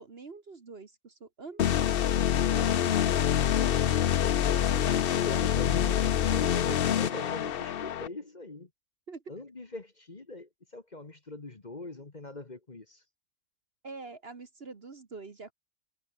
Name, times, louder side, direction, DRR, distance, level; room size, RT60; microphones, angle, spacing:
voice 1, 0.0-3.8 6.5-6.8 9.1-9.3 13.8-15.5, right 4 dB, 40° right, 1.6 m, -45 dB
sound 1, 1.6-8.1, left 10 dB, 55° left, 0.6 m, -26 dB
voice 2, 4.2-8.7 9.3-13.0, left 2 dB, 30° left, 1.7 m, -42 dB
omnidirectional pair, 1.6 m